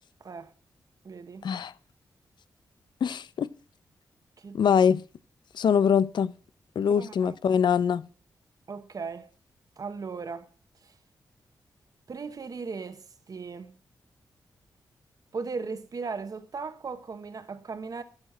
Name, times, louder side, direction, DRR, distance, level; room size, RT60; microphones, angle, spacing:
voice 1, 0.2-0.5 1.0-1.5 4.4-4.6 6.9-7.4 8.7-9.3 9.8-10.5 10.8-11.0 12.1-13.8 15.3-18.0, right 4 dB, 55° right, 1.0 m, -37 dB
voice 2, 3.0-3.5 4.5-5.0 5.5-6.3 6.8-8.0, left 7 dB, 75° left, 0.6 m, -23 dB
11.5 x 5.0 x 7.3 m
cardioid pair, 50°, 8 cm